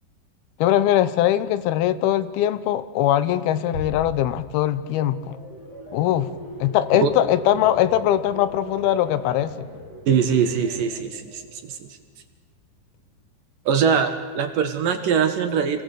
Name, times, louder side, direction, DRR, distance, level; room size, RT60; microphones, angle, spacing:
voice 1, 0.6-5.4 5.9-6.3 6.6-9.7, left 12 dB, 75° left, 14 dB, 2.7 m, -21 dB
Bass drum, 3.7-5.1, left 2 dB, 45° left, 3.6 m, -37 dB
sound 1, 4.6-11.8 12.2-12.6, right 1 dB, 25° left, 5.2 m, -39 dB
voice 2, 10.1-11.9 13.7-15.8, right 7 dB, 65° right, 7 dB, 2.8 m, -22 dB
28.0 x 19.0 x 8.3 m, 1.4 s
omnidirectional pair, 4.7 m